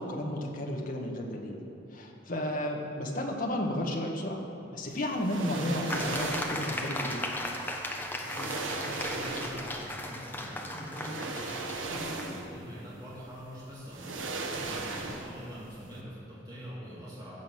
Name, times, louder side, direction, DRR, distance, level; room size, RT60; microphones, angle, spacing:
voice 1, 0.0-1.6 1.9-4.4 4.7-7.3, left 1 dB, 45° left, 1 dB, 1.5 m, -33 dB
sound 1, 5.2-6.7 7.7-7.8 8.2-9.8 10.9-12.6 13.0-13.1 13.9-15.5 15.8-15.9, right 3 dB, 90° right, 1.2 m, -36 dB
sound 2, 5.9-12.3, left 1 dB, 10° left, 0.9 m, -36 dB
voice 2, 8.3-8.8 9.1-17.4, equal, 20° right, -10 dB, 2.7 m, -44 dB
15.5 x 6.3 x 7.4 m, 2.8 s
head